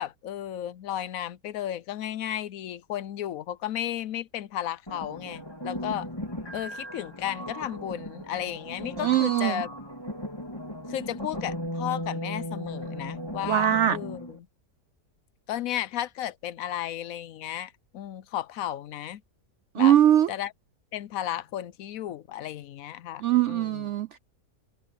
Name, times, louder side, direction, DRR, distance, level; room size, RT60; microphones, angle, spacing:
voice 1, 0.0-6.1 6.5-9.7 10.9-14.4 15.5-19.2 19.8-20.0 20.3-20.5 20.9-23.9, left 11 dB, 65° left, 0.9 m, -34 dB
sound 1, 4.9-14.4, equal, 15° left, 3.7 m, -37 dB
voice 2, 9.0-9.6 13.5-14.0 19.7-20.3 23.2-24.2, right 11 dB, 80° right, 0.6 m, -21 dB
omnidirectional pair, 1.8 m